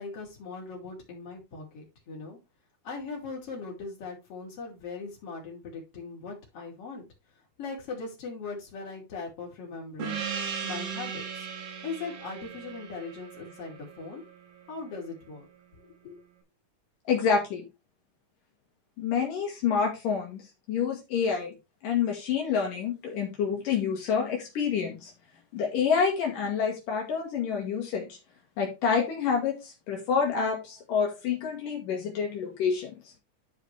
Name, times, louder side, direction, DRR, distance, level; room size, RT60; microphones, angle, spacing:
voice 1, 0.0-2.4 2.8-7.0 7.6-11.5 11.8-14.2 14.7-15.5 15.8-16.2, left 4 dB, 45° left, -2 dB, 3.9 m, -40 dB
Gong, 10.0-15.0, right 7 dB, 85° right, 3.6 m, -37 dB
voice 2, 17.1-17.7 19.0-20.4 20.7-21.5 21.8-25.1 25.5-28.2 28.6-32.9, left 6 dB, 75° left, 0 dB, 3.4 m, -28 dB
12.0 x 5.0 x 3.3 m, 0.25 s
omnidirectional pair, 3.9 m